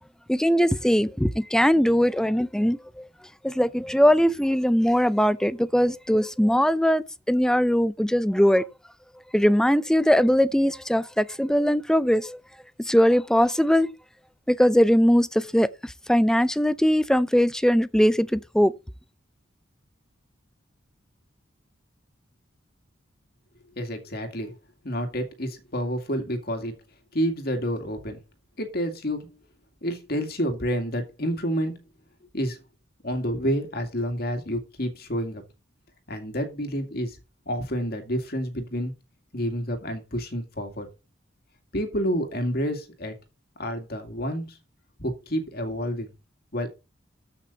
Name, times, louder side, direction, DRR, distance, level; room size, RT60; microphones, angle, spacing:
voice 1, 0.3-3.1 3.4-8.6 9.3-12.4 12.8-13.9 14.5-18.7, equal, 5° left, 0.5 m, -21 dB
voice 2, 23.8-24.6 24.8-26.8 27.1-28.2 28.6-29.3 29.8-31.8 32.3-32.6 33.0-35.4 36.1-37.2 37.5-38.9 39.3-40.9 41.7-43.1 43.6-44.6 45.0-46.1 46.5-46.7, equal, 50° left, 2.3 m, -29 dB
14.0 x 5.9 x 4.0 m
head